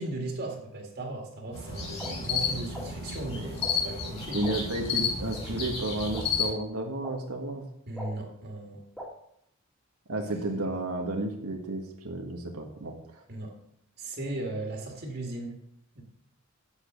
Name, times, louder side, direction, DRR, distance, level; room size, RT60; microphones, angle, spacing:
voice 1, 0.0-4.4 7.9-8.8 13.3-13.5 14.0-15.6 16.0-16.1, right 2 dB, 45° right, 1 dB, 2.0 m, -37 dB
sound 1, 1.5-6.5, left 5 dB, 25° left, 2.9 m, -32 dB
sound 2, 2.0-2.1 2.7-2.8 3.6-3.7 4.4-4.5 5.3-5.4 6.1-6.2 7.0-7.1 8.0-8.1 9.0-9.1, equal, ahead, 1.9 m, -39 dB
voice 2, 4.3-7.6 10.1-13.2, right 1 dB, 80° right, 1 dB, 1.5 m, -32 dB
8.5 x 7.9 x 6.2 m, 0.75 s
head